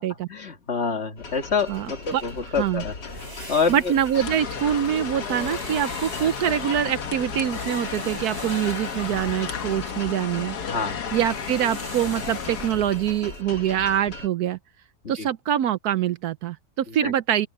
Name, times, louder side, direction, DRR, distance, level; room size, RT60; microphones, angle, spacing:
voice 1, 0.3-3.9 10.7-11.0 15.2-15.3 16.9-17.1, left 5 dB, 40° left, 1.8 m, -27 dB
sound 1, 1.2-14.3, left 3 dB, 90° left, 3.0 m, -39 dB
sound 2, 1.7-13.4, right 1 dB, 35° right, 6.7 m, -43 dB
voice 2, 3.7-10.6 11.1-14.6 15.1-17.5, right 10 dB, 70° right, 1.1 m, -24 dB
sound 3, 4.1-12.7, left 7 dB, 70° left, 1.9 m, -33 dB
open air
omnidirectional pair, 1.8 m